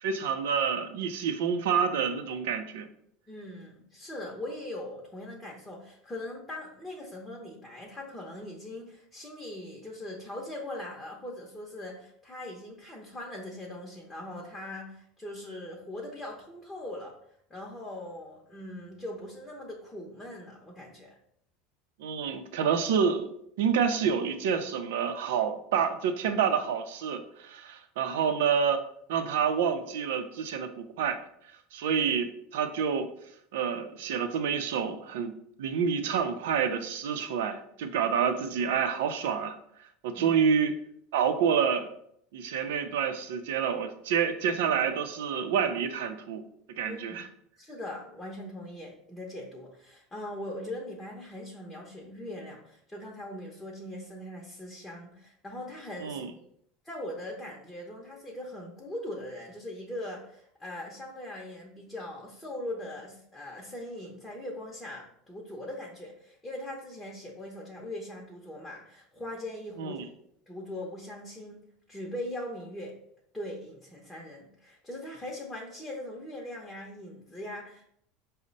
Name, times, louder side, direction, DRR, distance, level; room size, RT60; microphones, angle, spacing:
voice 1, 0.0-2.9 22.0-23.3 23.6-28.8 29.1-31.2 31.7-33.1 33.5-35.3 35.6-39.5 40.0-40.8 41.1-41.9 42.3-46.4 46.7-47.3 56.0-56.3 69.8-70.1, right 7 dB, 85° right, 8 dB, 0.5 m, -28 dB
voice 2, 3.3-17.1 17.5-21.1 40.2-40.3 46.9-47.2 47.6-56.2 56.8-70.0 70.5-71.6 71.9-72.9 73.3-77.8, left 1 dB, 10° left, -2 dB, 0.7 m, -40 dB
5.2 x 2.1 x 3.9 m, 0.69 s
supercardioid pair, 140°, 0 cm